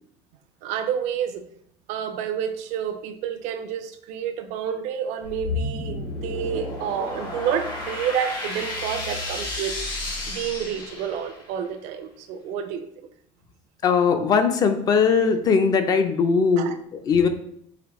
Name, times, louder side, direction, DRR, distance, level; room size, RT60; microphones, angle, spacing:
voice 1, 0.6-1.4 1.9-9.7 10.3-12.9 16.6-16.7, right 8 dB, 70° right, 8 dB, 0.5 m, -29 dB
sound 1, 5.2-11.5, left 2 dB, 90° left, 1.7 m, -32 dB
voice 2, 13.8-17.3, left 5 dB, 35° left, 8 dB, 0.4 m, -20 dB
4.9 x 2.9 x 3.1 m, 0.68 s
cardioid pair, 165°, 12 cm